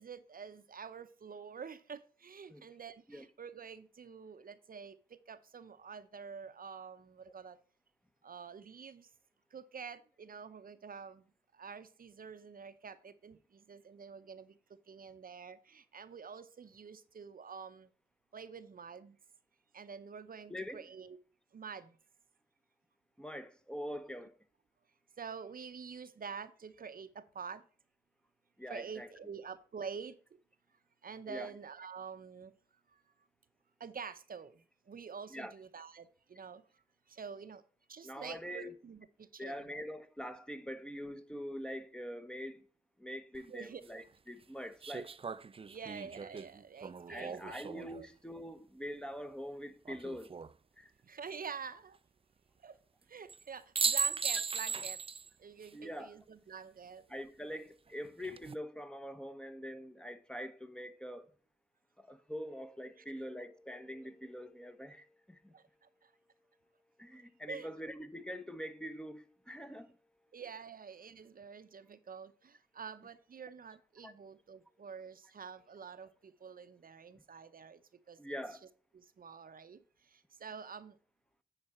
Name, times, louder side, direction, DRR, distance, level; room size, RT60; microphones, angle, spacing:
voice 1, 0.0-7.6 8.2-9.1 9.5-11.3 11.5-14.6 14.9-17.9 18.3-19.2 19.7-21.2 21.5-22.0 25.2-27.6 28.7-30.2 31.0-32.5 32.9-33.0 33.8-36.6 37.1-37.6 37.9-39.7 43.5-43.8 45.6-47.6 47.9-48.1 51.1-52.0 52.6-52.8 53.1-55.0 55.4-57.0 63.0-63.1 65.5-66.1 67.5-67.7 70.3-77.8 78.1-78.2 78.5-78.6 78.9-81.0, right 6 dB, 60° right, 0.7 m, -47 dB
voice 2, 20.5-20.8 23.2-24.3 28.6-29.1 31.3-31.5 35.3-35.5 38.0-38.7 39.4-42.6 43.0-45.1 47.1-50.3 50.8-50.9 55.7-56.1 57.1-61.3 62.1-65.5 67.0-69.9 74.0-74.1 78.2-78.6, equal, 5° left, 0.9 m, -44 dB
sound 1, 43.3-43.4 44.8-48.0 49.9-50.5 53.3-53.4 53.8-55.3 55.6-55.7 58.0-58.5, right 5 dB, 35° right, 0.4 m, -37 dB
9.8 x 4.9 x 4.2 m
cardioid pair, 80°, 17 cm